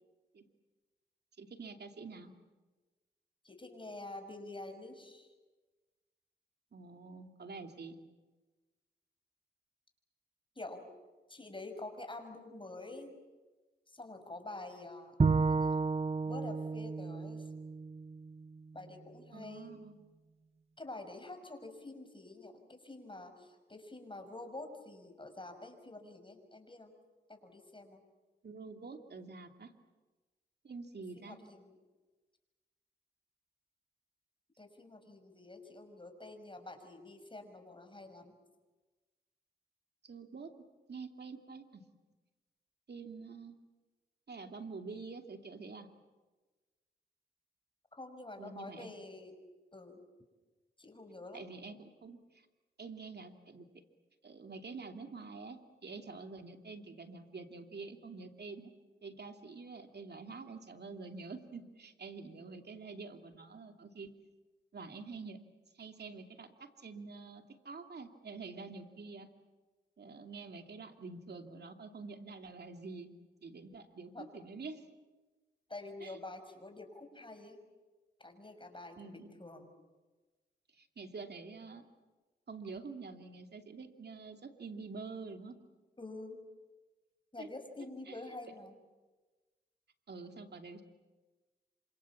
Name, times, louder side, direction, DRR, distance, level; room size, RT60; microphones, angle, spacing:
voice 1, 1.4-2.3 6.7-8.0 19.3-20.0 28.4-29.7 30.6-31.4 40.0-40.5 40.9-41.8 42.9-43.6 44.3-45.9 48.4-48.9 51.3-52.5 52.8-53.7 54.2-58.7 59.0-64.1 64.7-65.4 65.7-69.3 70.0-73.1 73.4-74.9 76.0-76.2 79.0-79.3 80.7-81.8 82.5-85.6 87.4-87.5 88.1-88.2 90.1-90.8, right 4 dB, 65° right, 5 dB, 2.8 m, -47 dB
voice 2, 3.4-5.3 10.6-10.8 11.3-13.1 13.9-15.2 15.5-15.8 16.2-17.5 18.7-19.7 20.8-26.9 27.3-28.0 31.2-31.8 34.6-38.3 47.9-49.3 49.7-50.0 50.8-51.4 62.2-62.7 74.1-74.3 75.7-77.6 78.2-79.7 86.0-86.4 87.3-88.7, left 2 dB, 25° left, 6 dB, 6.2 m, -48 dB
Bowed string instrument, 15.2-18.5, right 4 dB, 35° right, 0.8 m, -32 dB
27.5 x 26.0 x 7.4 m, 1.2 s
cardioid pair, 55°, 18 cm